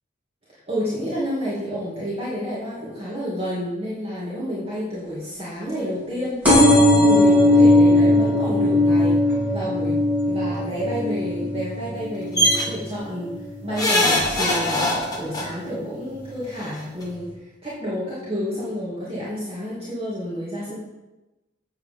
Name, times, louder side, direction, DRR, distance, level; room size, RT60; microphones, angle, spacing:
voice 1, 0.7-6.4 7.1-9.2 9.5-13.3 13.6-17.3 17.6-20.7, equal, 30° right, -9 dB, 2.4 m, -30 dB
sound 1, 6.4-13.7 14.2-14.6 15.5-15.6 15.8-15.9 16.1-16.2, left 1 dB, 10° right, 3.4 m, -18 dB
sound 2, 12.4-12.6 13.8-15.4 16.6-16.7 17.0-17.1, left 1 dB, 20° left, 1.6 m, -20 dB
7.9 x 7.8 x 5.4 m, 1.1 s
head